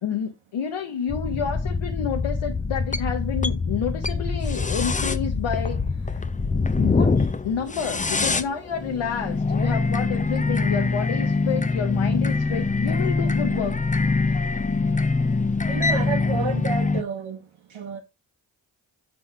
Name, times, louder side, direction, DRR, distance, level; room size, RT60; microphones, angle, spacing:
voice 1, 0.0-6.2 6.8-13.8, left 7 dB, 75° left, 0.9 m, -29 dB
sound 1, 1.1-17.0, left 3 dB, 15° left, 0.5 m, -24 dB
voice 2, 15.7-17.4 17.7-18.0, right 5 dB, 70° right, 1.0 m, -30 dB
6.2 x 3.9 x 4.5 m
cardioid pair, 50°, 48 cm